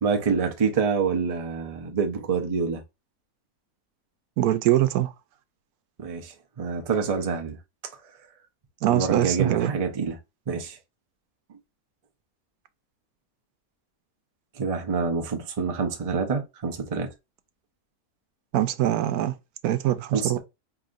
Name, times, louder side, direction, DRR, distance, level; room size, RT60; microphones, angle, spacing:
voice 1, 0.0-2.8 6.0-7.6 8.9-10.2 10.5-10.8 14.6-17.1 20.1-20.4, right 5 dB, 35° right, 0.6 m, -27 dB
voice 2, 4.4-5.1 8.8-9.7 18.5-19.3 19.6-20.4, right 13 dB, 90° right, 1.1 m, -23 dB
4.9 x 2.8 x 2.5 m
omnidirectional pair, 1.5 m